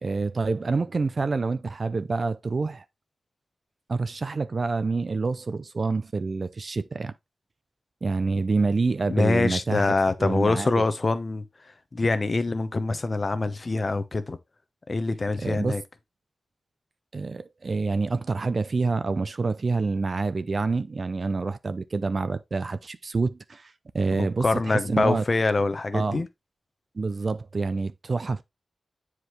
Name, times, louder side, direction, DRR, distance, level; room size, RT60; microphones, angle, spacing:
voice 1, 0.0-2.8 3.9-7.1 8.0-10.7 15.4-15.8 17.1-25.2 25.9-26.2 26.9-28.4, right 3 dB, 55° right, 0.6 m, -27 dB
voice 2, 9.1-11.4 11.9-14.4 14.9-15.8 24.2-26.3, left 3 dB, 45° left, 0.9 m, -24 dB
7.8 x 4.8 x 3.2 m
cardioid pair, 60°, 0 cm